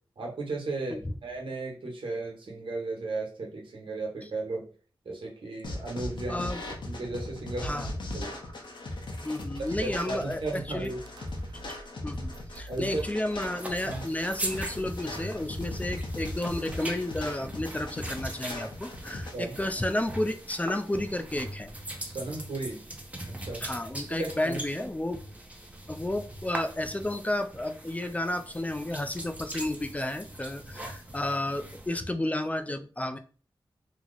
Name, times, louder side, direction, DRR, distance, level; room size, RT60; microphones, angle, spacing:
voice 1, 0.2-4.6 5.0-6.5 6.8-7.8 8.1-8.3 9.8-11.0 12.7-13.0 13.8-14.0 19.3-19.6 22.0-22.8 23.3-23.6 24.1-24.9, right 2 dB, 75° right, -1 dB, 1.1 m, -35 dB
sound 1, 5.6-19.3, left 1 dB, 60° left, 0.7 m, -38 dB
voice 2, 6.3-6.6 7.6-7.9 9.2-10.9 11.7-11.8 12.0-21.7 23.6-25.2 25.9-33.2, left 1 dB, 15° left, 8 dB, 0.3 m, -32 dB
sound 2, 9.1-9.2 9.6-16.0, right 1 dB, 55° right, 0.4 m, -47 dB
sound 3, 13.4-31.9, right 1 dB, 15° right, 0.6 m, -41 dB
2.9 x 2.0 x 3.8 m, 0.39 s
wide cardioid pair, 95°, 9 cm